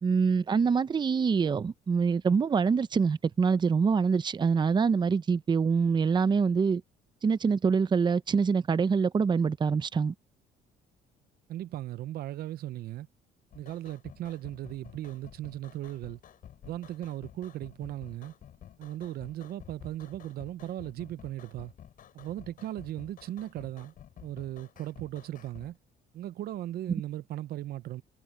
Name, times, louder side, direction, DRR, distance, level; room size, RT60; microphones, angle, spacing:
voice 1, 0.0-6.8 7.2-10.1, right 5 dB, 25° right, 0.7 m, -25 dB
voice 2, 11.5-13.1 13.5-16.2 16.6-18.3 18.8-21.7 22.1-23.9 24.2-25.8 26.1-28.0, right 13 dB, 65° right, 0.7 m, -37 dB
sound 1, 13.5-25.7, left 10 dB, 55° left, 5.6 m, -51 dB
cardioid pair, 110°, 17 cm